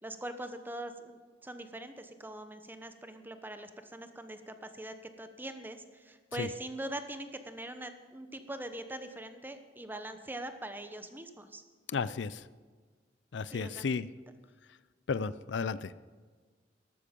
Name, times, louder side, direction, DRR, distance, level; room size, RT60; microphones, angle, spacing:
voice 1, 0.0-11.6 13.5-13.9, right 1 dB, 10° right, 9 dB, 1.0 m, -42 dB
voice 2, 11.9-12.4 13.3-14.1 15.1-15.9, left 5 dB, 80° left, 17 dB, 0.5 m, -33 dB
13.5 x 12.5 x 5.3 m, 1.5 s
head